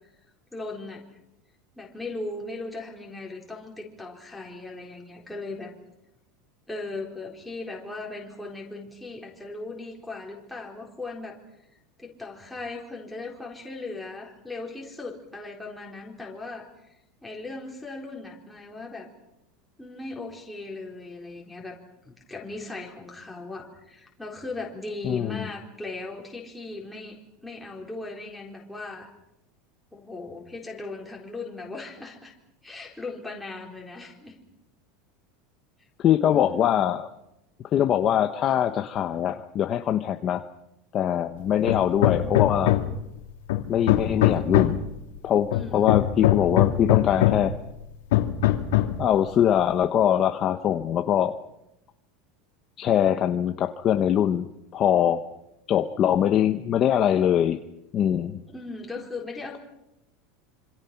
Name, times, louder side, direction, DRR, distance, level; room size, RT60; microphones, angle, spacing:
voice 1, 0.5-1.0 1.8-5.7 6.7-11.4 12.0-16.7 17.2-19.1 19.8-21.8 22.0-27.2 27.4-29.1 29.9-32.3 32.6-34.4 36.3-36.8 45.5-46.0 58.5-59.6, left 3 dB, 5° left, -2 dB, 4.2 m, -38 dB
voice 2, 25.0-25.5 36.0-37.1 37.7-40.4 40.9-42.7 43.7-44.8 45.2-47.5 49.0-51.3 52.8-55.2 55.7-57.6 57.9-58.4, left 10 dB, 25° left, 7 dB, 0.9 m, -23 dB
Hammer, 41.7-43.1 43.5-44.9 45.5-47.6 48.1-49.1, left 13 dB, 85° left, 2.6 m, -22 dB
27.0 x 26.5 x 5.9 m, 0.87 s
supercardioid pair, 180°, 0 cm